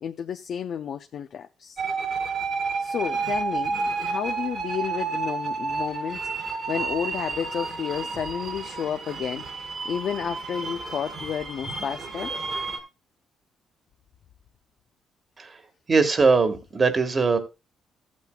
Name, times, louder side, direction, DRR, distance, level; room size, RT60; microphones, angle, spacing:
voice 1, 0.0-1.8 2.8-12.3, left 8 dB, 65° left, 0.5 m, -32 dB
sound 1, 1.8-12.8, right 4 dB, 50° right, 2.5 m, -31 dB
voice 2, 15.9-17.4, right 4 dB, 35° right, 1.7 m, -21 dB
14.5 x 8.3 x 2.3 m
cardioid pair, 90°, 0 cm